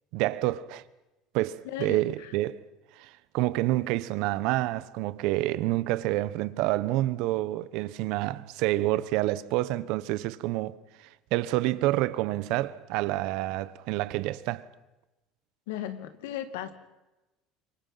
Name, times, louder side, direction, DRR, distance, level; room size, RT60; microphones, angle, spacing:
voice 1, 0.1-0.8 1.3-2.6 3.0-14.7, right 17 dB, 70° right, 1.1 m, -28 dB
voice 2, 1.6-2.3 15.7-16.7, left 11 dB, 90° left, 2.3 m, -36 dB
27.0 x 24.0 x 5.9 m
supercardioid pair, 110°, 0 cm